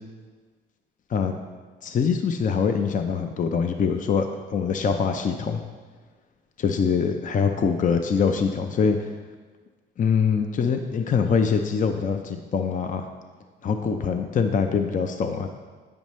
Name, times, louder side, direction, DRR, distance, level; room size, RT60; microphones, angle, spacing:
voice 1, 1.8-5.6 6.6-9.0 10.0-13.0 13.6-15.5, left 6 dB, 40° left, 6 dB, 0.5 m, -24 dB
9.0 x 6.9 x 3.1 m, 1.4 s
cardioid pair, 90°, 20 cm